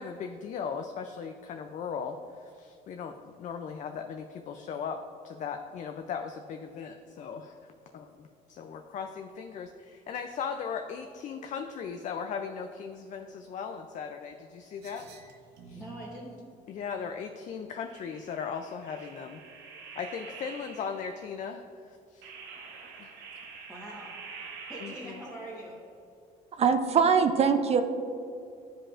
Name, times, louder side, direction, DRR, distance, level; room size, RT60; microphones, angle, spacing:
voice 1, 0.0-5.0 5.2-7.6 7.9-15.1 15.7-15.8 16.7-19.4 20.0-22.3 23.0-23.1 24.8-25.2, left 6 dB, 45° left, 5 dB, 0.4 m, -38 dB
sound 1, 14.8-16.1 17.9-21.2 22.2-25.6, right 5 dB, 85° right, 0.9 m, -47 dB
voice 2, 15.7-16.4 23.7-24.1 24.7-25.8, right 1 dB, 5° right, -7 dB, 1.2 m, -43 dB
voice 3, 26.6-27.8, right 6 dB, 40° right, 8 dB, 0.4 m, -22 dB
10.0 x 5.0 x 2.5 m, 2.5 s
cardioid pair, 110°, 17 cm